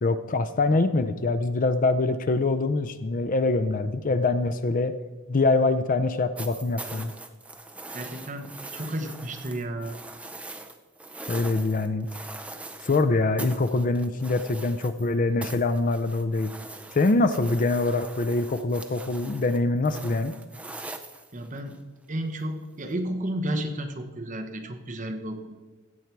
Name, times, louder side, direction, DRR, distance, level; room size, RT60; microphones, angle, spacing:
voice 1, 0.0-4.9 5.3-7.1 11.3-12.1 12.8-16.5 16.9-20.3, left 3 dB, 40° left, 12 dB, 0.5 m, -24 dB
sound 1, 6.4-13.0 13.4-15.1 15.4-21.7 22.9-23.0, right 2 dB, 5° right, 0.5 m, -42 dB
voice 2, 7.9-10.0 21.3-21.7 22.1-25.6, right 1 dB, 35° right, 5 dB, 1.0 m, -32 dB
16.0 x 7.3 x 4.6 m, 1.3 s
head